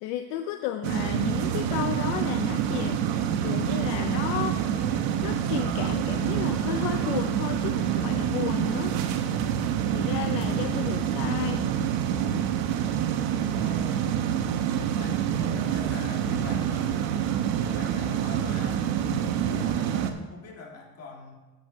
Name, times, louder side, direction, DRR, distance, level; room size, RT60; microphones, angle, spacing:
voice 1, 0.0-4.6 5.2-9.0 9.9-11.7, left 11 dB, 65° left, 8 dB, 0.6 m, -33 dB
sound 1, 0.8-20.1, right 9 dB, 70° right, 1.0 m, -27 dB
voice 2, 12.7-14.2 14.7-17.1 17.7-21.4, left 3 dB, 30° left, -1 dB, 1.8 m, -43 dB
14.0 x 7.7 x 2.7 m, 1.2 s
cardioid pair, 155°, 46 cm